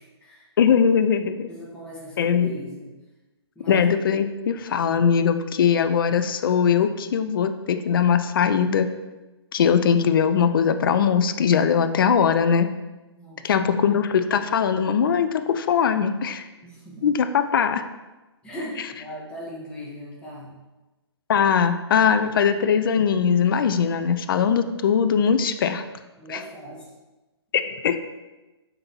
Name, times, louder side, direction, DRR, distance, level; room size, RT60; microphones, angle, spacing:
voice 1, 0.0-0.5 1.5-2.9 3.5-3.8 13.1-13.5 16.6-17.1 18.4-20.5 26.2-26.9, equal, 5° left, -5 dB, 1.0 m, -38 dB
voice 2, 0.6-1.5 2.2-2.5 3.7-8.9 9.5-12.7 13.4-16.5 17.0-17.8 21.3-25.8 26.3-26.4 27.5-28.0, left 7 dB, 50° left, 9 dB, 0.4 m, -21 dB
5.5 x 3.4 x 2.8 m, 1.1 s
figure-of-eight pair, 130°, 14 cm